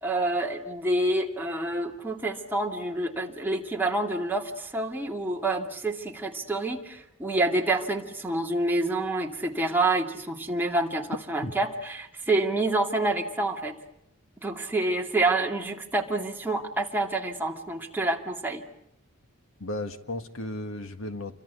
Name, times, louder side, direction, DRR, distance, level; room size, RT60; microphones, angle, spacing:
voice 1, 0.0-13.7 14.4-18.6, right 2 dB, 10° right, 1 dB, 2.5 m, -28 dB
voice 2, 19.6-21.4, left 1 dB, 80° left, 9 dB, 1.9 m, -34 dB
28.5 x 24.5 x 8.4 m, 0.82 s
head